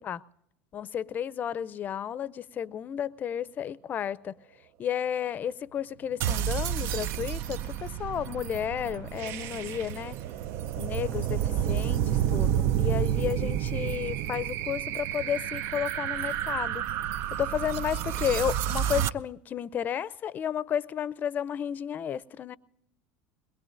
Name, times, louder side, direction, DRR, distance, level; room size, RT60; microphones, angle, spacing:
voice 1, 0.7-4.3 4.8-10.2 10.8-16.9 17.4-22.6, left 9 dB, 35° left, 0.5 m, -32 dB
sound 1, 6.2-19.1, right 11 dB, 60° right, 0.4 m, -30 dB
22.0 x 21.5 x 2.6 m
hypercardioid pair, 90°, 5 cm